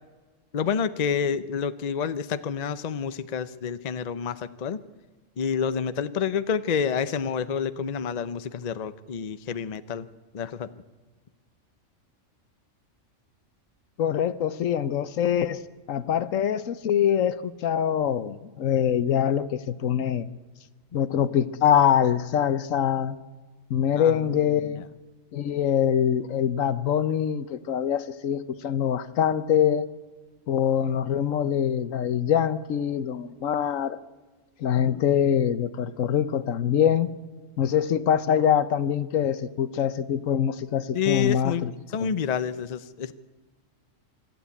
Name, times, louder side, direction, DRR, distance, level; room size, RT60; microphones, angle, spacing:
voice 1, 0.5-4.8 5.4-10.1 10.3-10.7 24.0-24.8 40.9-41.7 41.9-43.1, left 7 dB, 40° left, 13 dB, 0.7 m, -28 dB
voice 2, 14.0-15.6 15.9-20.3 20.9-23.2 23.7-24.8 25.3-29.9 30.5-34.0 34.6-37.1 37.6-41.7 42.0-42.1, left 9 dB, 80° left, 15 dB, 1.2 m, -24 dB
25.0 x 12.5 x 8.4 m, 1.3 s
omnidirectional pair, 1.3 m